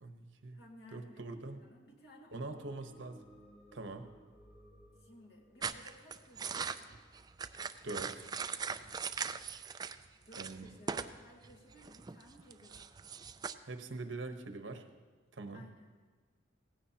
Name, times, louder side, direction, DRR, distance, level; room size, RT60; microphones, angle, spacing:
voice 1, 0.0-0.6 0.9-1.6 2.3-3.2 3.7-4.1 7.8-8.3 10.4-10.7 13.6-14.9 15.3-15.6, right 3 dB, 80° right, 7 dB, 1.0 m, -43 dB
voice 2, 0.5-2.9 5.0-7.0 8.7-9.1 10.1-13.0 15.5-15.9, left 1 dB, 60° left, -1 dB, 2.1 m, -58 dB
sound 1, 2.5-6.9, equal, 35° left, 1.9 m, -60 dB
sound 2, 5.6-10.0 10.3-11.2 11.4-13.5, right 5 dB, 20° right, 0.3 m, -40 dB
17.5 x 15.5 x 2.9 m, 1.4 s
head